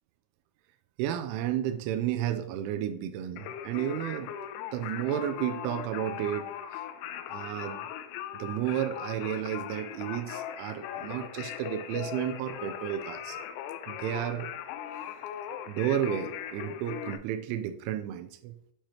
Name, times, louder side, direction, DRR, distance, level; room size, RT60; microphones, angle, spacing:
voice 1, 1.0-4.3 4.7-6.8 7.3-7.8 8.3-13.4 13.9-14.5 15.7-18.5, right 11 dB, 90° right, 7 dB, 3.0 m, -32 dB
Singing, 3.4-17.2, left 10 dB, 85° left, 2.9 m, -39 dB
8.9 x 4.8 x 2.9 m, 0.70 s
omnidirectional pair, 5.4 m